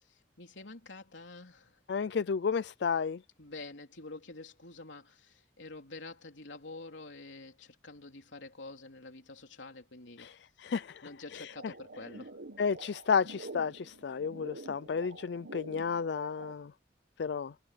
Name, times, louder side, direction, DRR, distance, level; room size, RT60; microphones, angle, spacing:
voice 1, 0.1-1.8 3.4-10.3 11.0-12.4, left 3 dB, 90° left, 3.6 m, -48 dB
voice 2, 1.9-3.2 10.2-10.3 10.6-11.0 11.3-11.5 12.6-16.7 17.2-17.5, left 6 dB, 70° left, 0.4 m, -32 dB
sound 1, 11.5-16.5, right 2 dB, 80° right, 1.5 m, -48 dB
head